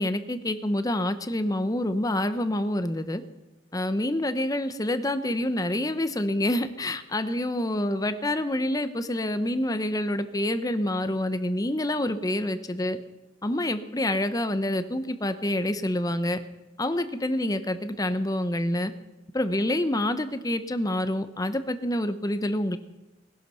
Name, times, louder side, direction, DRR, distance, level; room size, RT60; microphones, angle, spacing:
voice 1, 0.0-3.2 3.7-13.0 13.4-16.4 16.8-18.9 19.3-22.8, left 1 dB, 20° left, 10 dB, 0.8 m, -27 dB
19.5 x 11.5 x 5.6 m, 1.0 s
head